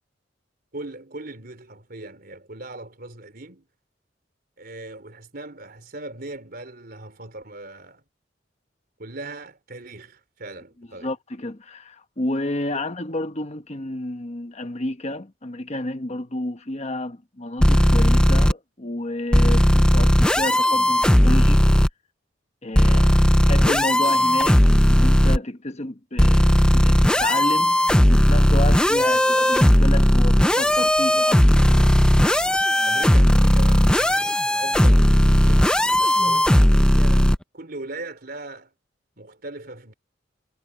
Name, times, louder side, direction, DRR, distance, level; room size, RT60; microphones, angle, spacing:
voice 1, 0.7-3.7 4.6-8.0 9.0-11.1 12.7-12.9 22.8-23.4 29.0-29.2 32.8-38.7 39.2-39.9, right 2 dB, 55° right, 4.0 m, -39 dB
voice 2, 11.0-21.7 22.6-23.0 23.4-26.5 26.7-31.9, left 1 dB, 35° left, 1.2 m, -30 dB
sound 1, 17.6-18.5 19.3-21.9 22.7-25.4 26.2-37.4, equal, 5° left, 0.5 m, -16 dB
head